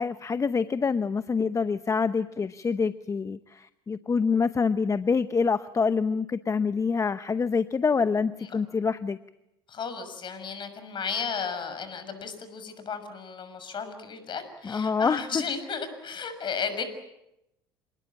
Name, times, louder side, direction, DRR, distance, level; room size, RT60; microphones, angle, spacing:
voice 1, 0.0-9.2 14.6-15.4, left 5 dB, 25° left, 13 dB, 0.9 m, -26 dB
voice 2, 9.7-16.8, left 6 dB, 40° left, 10 dB, 6.5 m, -34 dB
28.0 x 20.5 x 8.8 m, 0.86 s
hypercardioid pair, 70°, 12 cm